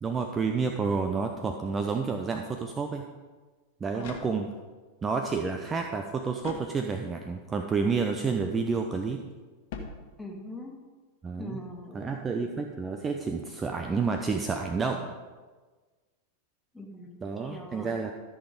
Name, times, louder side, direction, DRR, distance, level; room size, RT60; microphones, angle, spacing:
voice 1, 0.0-3.1 3.8-4.5 5.0-9.2 11.2-11.6 11.9-15.1 17.2-18.1, right 4 dB, 20° right, 4 dB, 0.7 m, -30 dB
sound 1, 3.5-4.8 6.4-7.3 9.7-10.6, left 5 dB, 50° left, 1.5 m, -44 dB
voice 2, 3.9-4.3 10.2-10.7 11.4-12.3 16.7-18.0, left 1 dB, 5° left, 0 dB, 1.9 m, -42 dB
13.5 x 6.1 x 5.1 m, 1.3 s
figure-of-eight pair, 90°, 0 cm